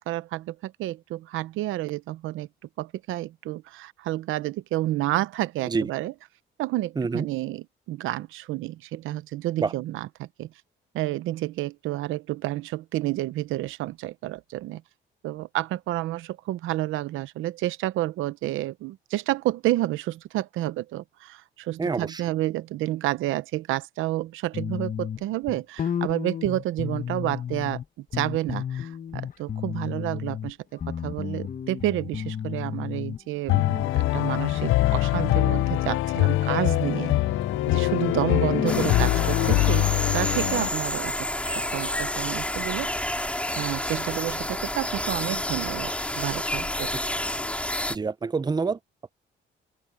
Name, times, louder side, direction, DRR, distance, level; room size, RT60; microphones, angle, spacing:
voice 1, 0.0-2.5 2.8-6.1 6.6-10.5 10.9-14.8 15.2-37.1 37.7-45.9 46.2-46.9, right 16 dB, 90° right, 0.8 m, -30 dB
voice 2, 21.8-22.2 47.9-48.8, right 4 dB, 20° right, 0.7 m, -26 dB
sound 1, 24.5-27.8 28.1-30.5 30.8-33.2 33.5-39.8, left 8 dB, 45° left, 1.2 m, -33 dB
sound 2, 33.5-40.7, left 18 dB, 80° left, 0.4 m, -23 dB
sound 3, 38.7-47.9, left 1 dB, 5° left, 4.7 m, -29 dB
cardioid pair, 90°, 20 cm